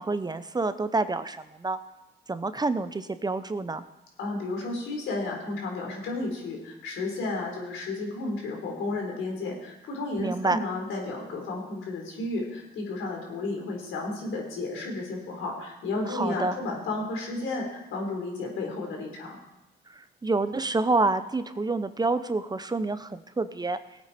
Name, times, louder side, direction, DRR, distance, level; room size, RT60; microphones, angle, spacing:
voice 1, 0.0-1.8 2.3-3.8 10.2-10.6 16.1-16.5 20.0-23.8, right 3 dB, 20° right, 12 dB, 0.7 m, -28 dB
voice 2, 4.2-19.4, left 2 dB, 85° left, 1 dB, 3.9 m, -32 dB
18.0 x 8.8 x 4.3 m, 0.98 s
cardioid pair, 90°, 20 cm